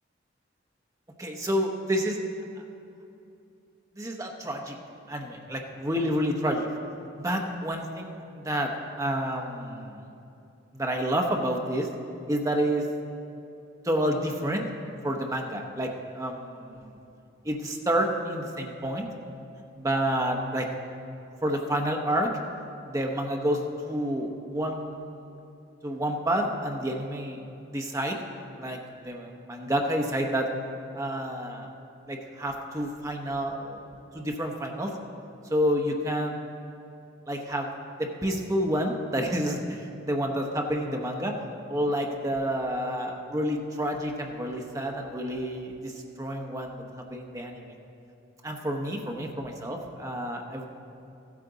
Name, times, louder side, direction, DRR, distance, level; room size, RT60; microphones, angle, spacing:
voice 1, 1.2-2.2 2.6-2.7 4.0-4.8 5.1-6.7 7.2-8.7 9.0-10.1 10.7-11.9 12.3-12.9 13.8-14.6 15.0-15.9 16.1-16.9 17.4-19.1 19.8-20.7 21.4-22.3 22.8-25.4 25.8-27.4 27.7-28.2 28.6-30.5 30.9-31.7 32.1-33.8 34.1-34.9 35.5-36.4 37.3-41.3 41.7-46.8 47.1-47.7 48.4-50.6, equal, 15° right, 2 dB, 0.9 m, -29 dB
14.5 x 8.4 x 3.9 m, 2.8 s
head